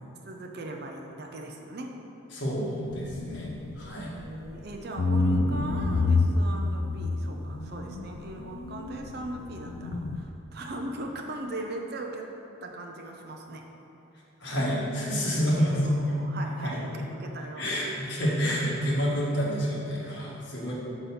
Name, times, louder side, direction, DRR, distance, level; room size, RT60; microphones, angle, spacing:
voice 1, 0.2-2.0 4.1-12.3 12.6-13.7 15.3-17.9 18.4-18.9, right 1 dB, 50° right, 2 dB, 0.5 m, -39 dB
voice 2, 2.3-3.5 3.8-4.1 14.4-15.8 16.6-16.8 17.6-20.7, equal, 60° left, -5 dB, 1.6 m, -28 dB
Boot Up, 2.9-4.6 5.0-10.2, left 2 dB, 75° left, 0.4 m, -28 dB
6.9 x 4.2 x 5.6 m, 3.0 s
head